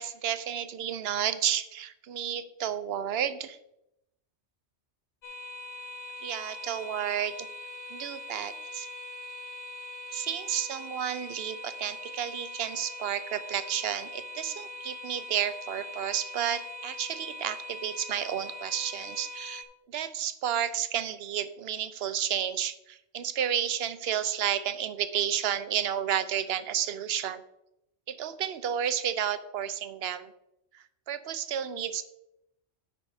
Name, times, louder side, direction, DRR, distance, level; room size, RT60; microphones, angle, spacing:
voice 1, 0.0-3.6 6.2-7.5 7.9-8.9 10.1-19.6 19.9-27.4 28.1-30.3 30.7-32.0, right 9 dB, 65° right, 13 dB, 0.8 m, -31 dB
sound 1, 5.2-19.6, left 1 dB, 60° left, 1.0 m, -42 dB
8.6 x 5.4 x 4.8 m, 0.85 s
omnidirectional pair, 1.2 m